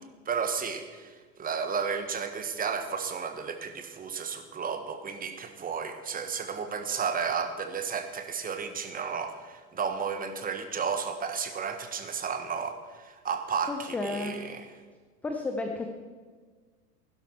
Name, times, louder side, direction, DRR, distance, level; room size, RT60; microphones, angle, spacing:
voice 1, 0.2-14.7, right 6 dB, 20° right, 7 dB, 1.4 m, -33 dB
voice 2, 13.7-14.3 15.2-15.9, left 3 dB, 5° left, 3 dB, 0.3 m, -32 dB
16.0 x 11.5 x 4.5 m, 1.5 s
figure-of-eight pair, 90°, 47 cm